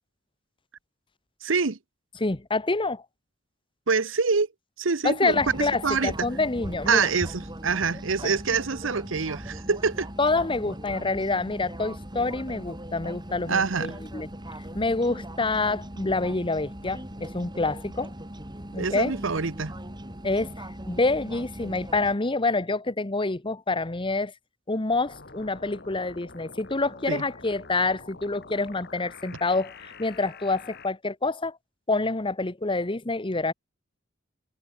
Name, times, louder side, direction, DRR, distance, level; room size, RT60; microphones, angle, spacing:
voice 1, 1.4-1.8 3.9-4.5 4.8-6.1 6.9-10.1 13.5-14.0 18.8-19.7 27.1-27.2, right 5 dB, 75° right, 1.0 m, -25 dB
voice 2, 2.2-3.0 5.0-7.1 8.2-8.3 10.2-14.3 14.7-18.1 18.7-19.1 20.2-24.3 24.7-31.6 31.9-33.5, left 3 dB, 25° left, 1.2 m, -27 dB
sound 1, 5.3-22.1, right 1 dB, 20° right, 7.8 m, -39 dB
sound 2, 25.0-30.9, left 4 dB, 55° left, 5.7 m, -46 dB
head